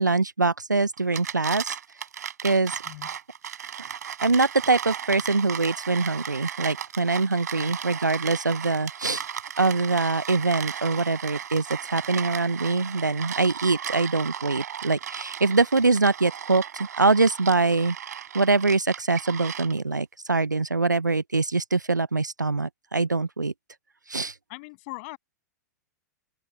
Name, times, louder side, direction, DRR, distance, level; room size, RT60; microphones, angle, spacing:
voice 1, 0.0-2.0 2.4-2.8 4.2-9.3 9.6-18.0 18.3-23.5 24.1-24.4, right 3 dB, 85° right, 0.7 m, -24 dB
sound 1, 1.0-20.0, right 9 dB, 65° right, 7.9 m, -36 dB
voice 2, 24.5-25.2, left 28 dB, 45° left, 7.8 m, -40 dB
open air
figure-of-eight pair, 100°, 10 cm